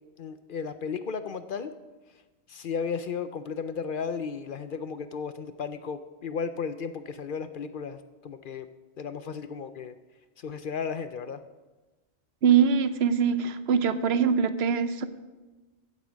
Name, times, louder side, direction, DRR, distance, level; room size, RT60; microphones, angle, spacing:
voice 1, 0.2-1.7 2.5-8.7 9.0-9.9 10.4-11.4, left 6 dB, 55° left, 11 dB, 0.7 m, -34 dB
voice 2, 12.4-15.1, right 7 dB, 65° right, 12 dB, 1.0 m, -23 dB
15.0 x 8.1 x 5.2 m, 1.2 s
omnidirectional pair, 1.2 m